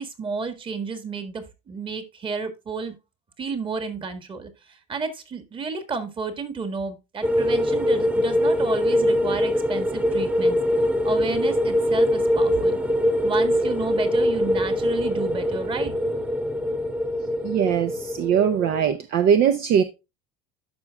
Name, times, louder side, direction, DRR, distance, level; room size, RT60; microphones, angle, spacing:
voice 1, 0.0-2.9 3.4-10.6 11.0-12.8 13.2-15.9, right 4 dB, 25° right, 1.6 m, -31 dB
sound 1, 7.2-18.9, equal, 5° right, 0.5 m, -23 dB
voice 2, 17.4-19.8, right 8 dB, 55° right, 0.7 m, -21 dB
12.0 x 5.4 x 2.3 m
supercardioid pair, 120°, 19 cm